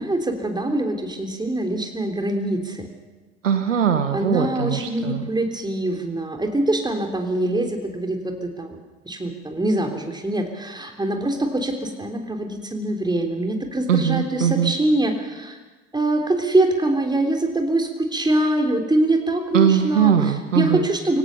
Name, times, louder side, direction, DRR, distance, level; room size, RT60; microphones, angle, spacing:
voice 1, 0.0-2.9 4.1-8.8 9.0-15.6 15.9-20.1 20.5-21.2, right 1 dB, 10° right, 3 dB, 3.5 m, -23 dB
voice 2, 3.4-5.3 13.9-14.7 19.5-20.9, right 8 dB, 85° right, 8 dB, 1.4 m, -20 dB
24.0 x 17.0 x 6.9 m, 1.3 s
figure-of-eight pair, 65°, 37 cm